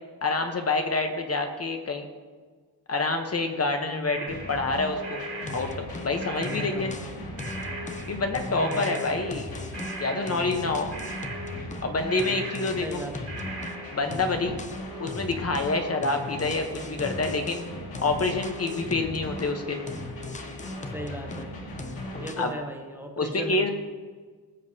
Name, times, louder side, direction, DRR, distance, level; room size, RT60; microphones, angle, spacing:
voice 1, 0.2-2.1 2.9-5.2 5.5-5.7 6.0-6.9 8.1-9.5 10.0-10.9 11.8-13.0 13.9-14.5 15.0-17.6 18.0-19.8 22.4-22.5 23.2-23.7, left 3 dB, 35° left, 5 dB, 0.9 m, -27 dB
voice 2, 3.9-4.3 6.4-7.1 8.6-8.9 12.8-13.3 20.9-21.5 22.2-23.7, right 1 dB, 5° right, 2 dB, 0.8 m, -37 dB
sound 1, 4.1-7.1 7.4-8.3 8.5-9.5 9.7-14.2, right 3 dB, 35° right, 2.1 m, -40 dB
sound 2, 4.3-22.3, left 1 dB, 60° left, 2.2 m, -39 dB
sound 3, 5.5-6.1 6.4-11.9 12.2-13.8 14.1-15.8 16.0-19.6 19.9-21.5 21.8-22.5, left 3 dB, 20° left, 0.5 m, -39 dB
20.0 x 7.4 x 2.8 m, 1.5 s
wide cardioid pair, 170°, 40 cm